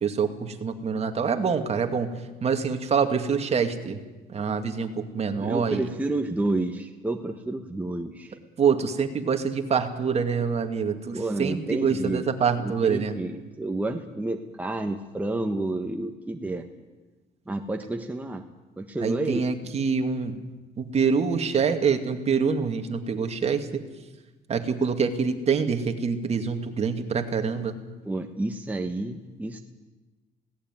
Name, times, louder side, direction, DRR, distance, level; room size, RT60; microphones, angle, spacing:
voice 1, 0.0-2.1 2.4-4.0 4.3-5.8 8.6-13.1 19.0-20.5 20.8-23.8 24.5-27.8, right 6 dB, 40° right, 6 dB, 2.3 m, -25 dB
voice 2, 5.3-8.4 11.1-12.2 12.6-16.7 17.5-18.5 18.8-19.7 28.0-29.6, right 2 dB, 10° right, 4 dB, 1.4 m, -30 dB
21.0 x 18.0 x 9.2 m, 1.2 s
cardioid pair, 110°, 17 cm